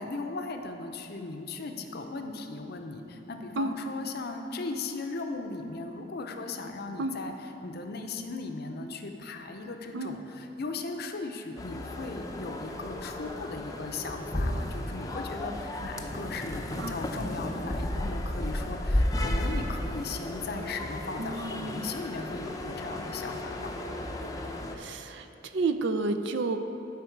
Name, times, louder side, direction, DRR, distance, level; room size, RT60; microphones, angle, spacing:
voice 1, 0.0-7.3 7.6-23.7, left 3 dB, 60° left, 5 dB, 0.6 m, -37 dB
sound 1, 11.6-24.8, left 1 dB, 20° left, 0.6 m, -33 dB
voice 2, 21.2-21.9 24.7-26.6, right 3 dB, 70° right, 8 dB, 0.5 m, -31 dB
11.5 x 5.2 x 4.6 m, 3.0 s
head